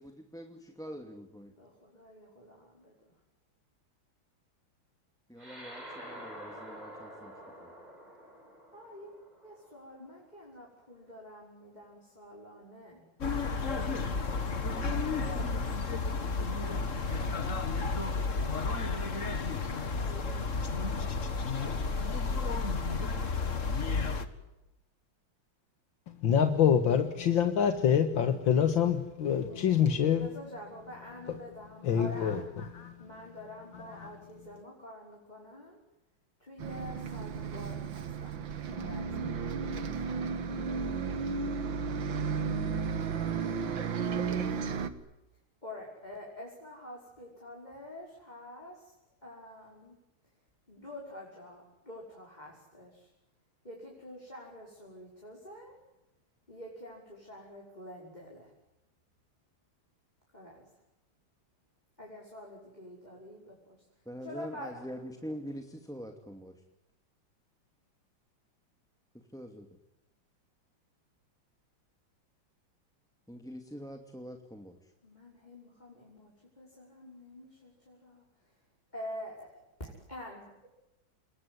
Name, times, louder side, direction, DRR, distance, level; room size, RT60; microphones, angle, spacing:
voice 1, 0.0-1.5 5.3-7.3 7.6-7.7 64.1-66.6 69.1-69.8 73.3-74.9, equal, ahead, 5 dB, 2.3 m, -44 dB
voice 2, 1.6-2.9 8.7-9.1 9.4-13.1 13.7-15.9 16.9-18.9 19.2-20.4 20.9-22.9 29.5-32.4 33.0-35.8 36.4-38.4 38.8-40.0 45.6-48.9 49.2-49.9 50.7-53.1 53.6-55.8 56.5-58.5 60.3-60.6 62.0-63.8 64.2-65.3 75.0-78.5 78.9-80.7, left 1 dB, 20° left, -3 dB, 6.0 m, -48 dB
sound 1, 5.4-10.1, equal, 20° right, 5.3 m, -48 dB
sound 2, 13.2-24.3, left 4 dB, 40° left, 2.0 m, -32 dB
voice 3, 26.1-30.3 31.3-31.4 31.8-33.0 33.7-34.2, left 8 dB, 75° left, 8 dB, 2.3 m, -26 dB
Bus, 36.6-44.9, right 5 dB, 70° right, 2.3 m, -33 dB
28.0 x 21.5 x 9.6 m, 0.95 s
omnidirectional pair, 2.2 m